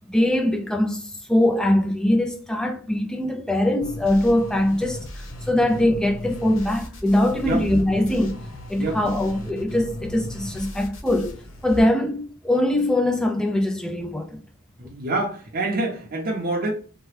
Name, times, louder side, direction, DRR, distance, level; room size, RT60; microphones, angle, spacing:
voice 1, 0.1-5.1 5.5-8.4 8.7-11.4 11.6-14.3, left 1 dB, 5° left, 0.4 m, -22 dB
sound 1, 3.8-11.8, equal, 80° left, 0.9 m, -36 dB
voice 2, 14.8-16.7, right 2 dB, 45° right, 0.7 m, -27 dB
2.8 x 2.2 x 3.2 m
head